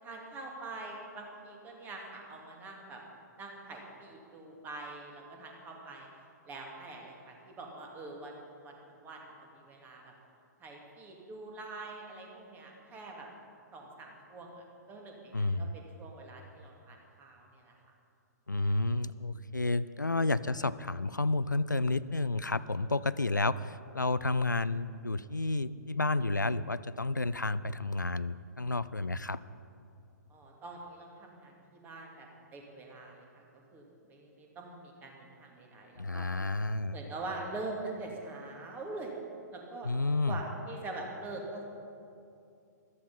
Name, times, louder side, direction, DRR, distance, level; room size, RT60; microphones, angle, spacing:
voice 1, 0.0-3.0 3.4-6.1 6.5-8.3 8.6-10.1 10.6-13.3 13.7-17.8 30.3-33.4 33.7-36.3 36.9-39.1 39.5-39.9 40.3-41.6, right 2 dB, 20° right, 0 dB, 2.3 m, -44 dB
voice 2, 15.3-15.8 18.5-29.4 36.0-37.0 39.8-40.4, left 2 dB, 90° left, 16 dB, 0.4 m, -31 dB
14.0 x 13.0 x 5.5 m, 2.5 s
figure-of-eight pair, 115°, 10 cm